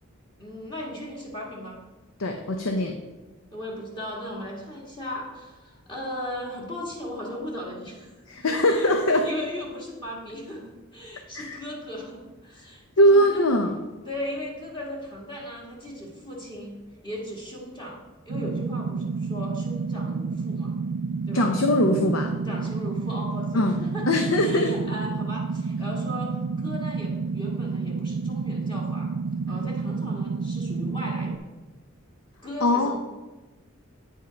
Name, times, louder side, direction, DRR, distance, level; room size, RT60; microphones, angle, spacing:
voice 1, 0.4-1.8 3.5-8.1 8.4-8.9 9.2-13.5 14.0-20.7 21.3-21.5 22.4-24.1 24.4-29.1 29.5-31.4 32.4-32.9, left 1 dB, 25° left, -4 dB, 1.7 m, -37 dB
voice 2, 2.2-3.0 8.3-9.3 11.3-11.6 13.0-13.8 21.3-22.3 23.5-23.8 24.1-24.7 32.6-32.9, equal, 75° left, 4 dB, 0.7 m, -21 dB
sound 1, 18.3-31.4, right 4 dB, 70° right, 0.4 m, -30 dB
9.0 x 5.5 x 5.1 m, 1.2 s
head